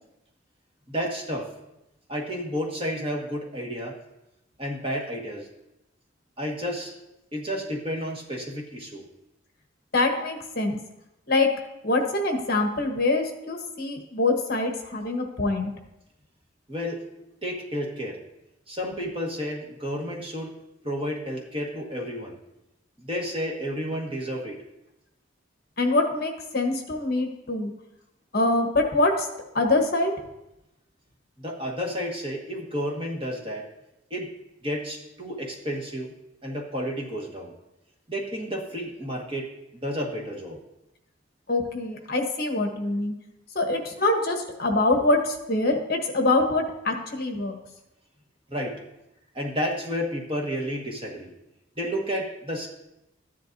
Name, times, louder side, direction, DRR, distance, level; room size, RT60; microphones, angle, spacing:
voice 1, 0.9-1.5 2.1-4.0 4.6-5.5 6.4-6.9 7.3-9.0 16.7-17.0 17.4-18.2 18.7-20.6 20.8-22.4 23.0-24.6 31.4-33.7 34.1-34.3 34.6-36.1 36.4-37.5 38.1-40.6 48.5-48.8 49.3-51.3 51.8-52.7, equal, 30° right, -2 dB, 1.7 m, -31 dB
voice 2, 9.9-10.8 11.3-11.5 11.8-15.7 25.8-27.7 28.3-29.3 29.5-30.2 41.5-43.1 43.5-47.6, left 2 dB, 55° left, 3 dB, 1.3 m, -24 dB
14.0 x 10.5 x 2.7 m, 0.90 s
head